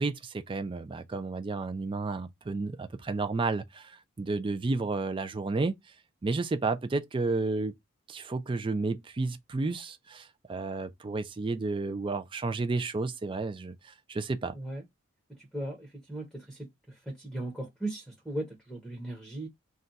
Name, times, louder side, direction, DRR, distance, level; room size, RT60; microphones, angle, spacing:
voice 1, 0.0-5.7 6.2-7.7 8.1-14.6, right 3 dB, 25° right, 0.3 m, -32 dB
voice 2, 15.4-19.5, right 1 dB, ahead, 0.7 m, -38 dB
2.3 x 2.2 x 3.8 m
head